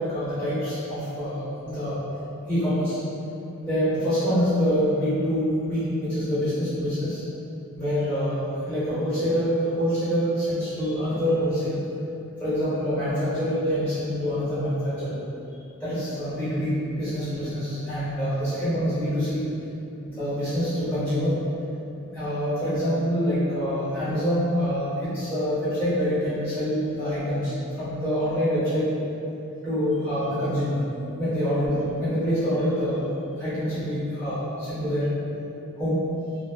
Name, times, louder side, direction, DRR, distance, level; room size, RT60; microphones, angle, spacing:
voice 1, 0.0-2.0 2.5-3.0 3.6-7.2 7.7-11.9 12.4-15.2 15.8-19.5 20.0-21.3 22.1-28.9 29.6-30.8 31.2-33.0 33.4-35.1 35.8-36.1, equal, 5° left, -16 dB, 1.3 m, -26 dB
3.0 x 2.1 x 2.9 m, 2.8 s
head